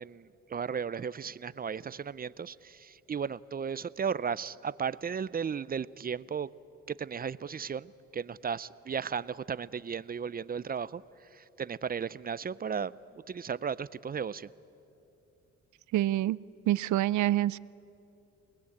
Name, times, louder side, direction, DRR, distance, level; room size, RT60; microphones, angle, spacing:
voice 1, 0.0-6.5 6.9-11.0 11.3-13.0 13.3-14.5, right 6 dB, 30° right, 18 dB, 0.6 m, -35 dB
voice 2, 15.9-16.4 16.7-17.6, right 14 dB, 75° right, 21 dB, 0.5 m, -26 dB
29.0 x 20.0 x 8.7 m, 2.8 s
cardioid pair, 90°, 30 cm